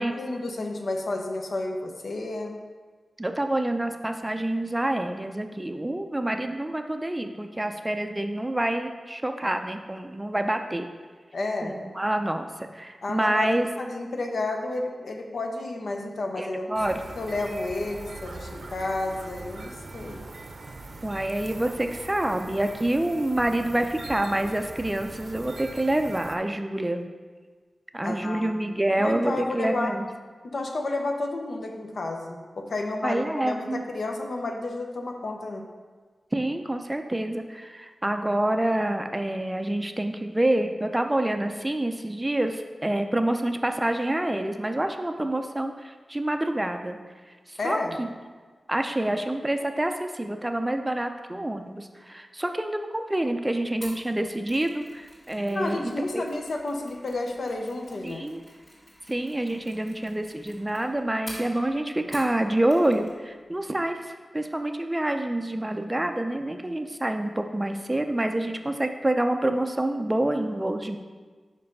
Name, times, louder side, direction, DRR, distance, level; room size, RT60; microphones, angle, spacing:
voice 1, 0.0-2.6 11.3-11.8 13.0-16.8 17.2-20.2 28.0-28.6 29.0-30.0 30.4-35.6 47.6-48.0 55.5-58.2, left 2 dB, 70° left, 2 dB, 0.8 m, -31 dB
voice 2, 3.2-10.9 11.6-13.7 16.4-16.9 21.0-27.1 27.9-30.1 33.0-33.8 36.3-47.0 47.5-48.1 48.7-56.2 58.0-58.4 59.1-71.0, right 1 dB, 15° right, 6 dB, 0.4 m, -27 dB
sound 1, 16.7-26.4, right 2 dB, 65° right, 0.6 m, -41 dB
Mechanisms, 53.8-62.4 62.7-63.2 63.4-63.5, left 1 dB, 50° left, 2.0 m, -48 dB
5.5 x 5.2 x 5.3 m, 1.5 s
wide cardioid pair, 120°, 0 cm